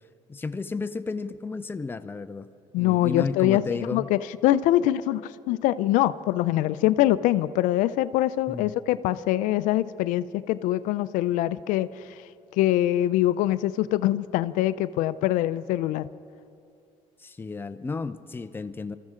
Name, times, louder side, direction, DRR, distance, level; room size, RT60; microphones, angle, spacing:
voice 1, 0.3-2.5 2.8-4.1 8.5-8.7 17.2-19.0, left 4 dB, 15° left, 0.5 m, -33 dB
voice 2, 2.7-3.6 3.9-11.9 12.6-16.1, left 14 dB, 85° left, 0.4 m, -23 dB
24.0 x 14.0 x 3.7 m
cardioid pair, 110°, 13 cm